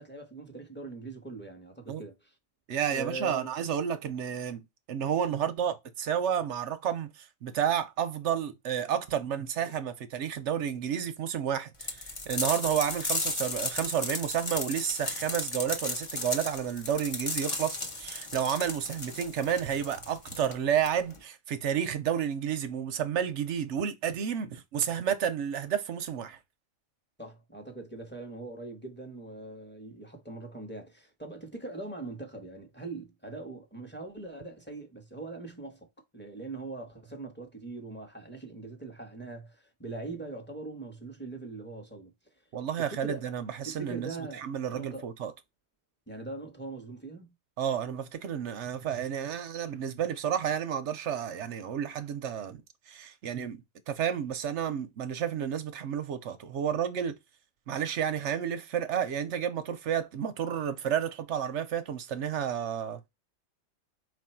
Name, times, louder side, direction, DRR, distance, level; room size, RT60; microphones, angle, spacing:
voice 1, 0.0-2.3 2.9-3.5 27.2-35.9 36.1-42.1 42.8-43.2 43.6-45.1 46.1-47.3, right 3 dB, 10° left, 0.9 m, -41 dB
voice 2, 2.7-26.4 42.5-45.3 47.6-52.6 52.9-53.6 53.9-57.2 57.7-63.0, right 8 dB, 65° right, 0.8 m, -31 dB
sound 1, 11.8-21.2, left 2 dB, 30° left, 0.6 m, -35 dB
4.7 x 2.5 x 4.4 m
omnidirectional pair, 1.5 m